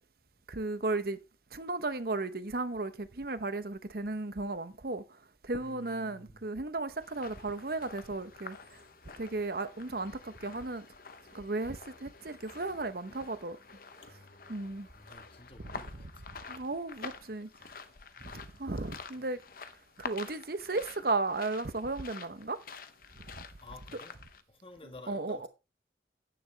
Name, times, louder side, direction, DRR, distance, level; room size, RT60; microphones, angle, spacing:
voice 1, 0.5-1.2 1.5-5.0 5.4-8.6 9.2-10.9 11.3-13.6 14.5-14.9 16.5-17.5 18.3-19.4 20.0-22.6 23.4-23.5 25.1-25.5, right 3 dB, 55° right, 0.9 m, -35 dB
voice 2, 5.6-6.5 14.0-16.3 17.6-17.7 18.2-18.6 19.1-19.3 23.6-24.2 24.5-25.5, left 2 dB, 30° left, 1.5 m, -53 dB
sound 1, 7.0-24.4, left 5 dB, 50° left, 0.8 m, -49 dB
10.0 x 9.5 x 3.3 m
head